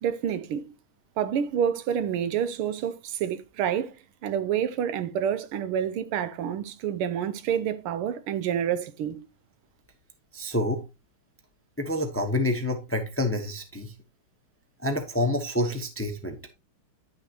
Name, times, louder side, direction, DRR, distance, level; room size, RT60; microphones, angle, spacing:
voice 1, 0.0-0.7 1.2-4.0 4.2-9.3, right 9 dB, 90° right, 1.6 m, -28 dB
voice 2, 10.3-10.8 11.8-13.9 14.8-16.4, left 1 dB, 10° left, 0.6 m, -28 dB
10.5 x 6.5 x 2.9 m
omnidirectional pair, 2.4 m